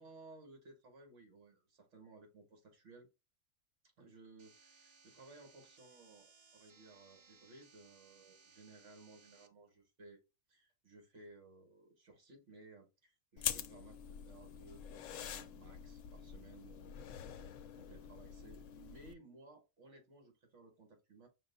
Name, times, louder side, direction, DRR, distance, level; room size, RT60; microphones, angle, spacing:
voice 1, 0.0-3.1 4.0-10.2 10.5-17.1 17.7-21.3, right 3 dB, 70° right, 1.7 m, -59 dB
sound 1, 4.4-9.5, right 4 dB, 40° right, 0.4 m, -65 dB
Lighter Smoke, 13.4-19.1, left 9 dB, 85° left, 0.9 m, -45 dB
5.8 x 2.2 x 3.9 m
omnidirectional pair, 1.3 m